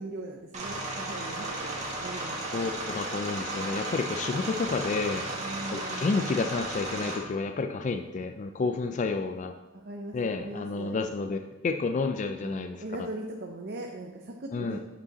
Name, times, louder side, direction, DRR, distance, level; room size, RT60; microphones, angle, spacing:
voice 1, 0.0-3.1 5.4-6.1 9.9-11.0 12.4-14.8, right 2 dB, 50° right, 1 dB, 0.6 m, -40 dB
sound 1, 0.5-7.2, right 2 dB, 35° right, 1.5 m, -34 dB
voice 2, 2.5-5.3 5.7-9.5 10.1-12.8 14.5-14.8, left 4 dB, 35° left, 6 dB, 0.3 m, -30 dB
8.1 x 5.4 x 4.1 m, 1.1 s
head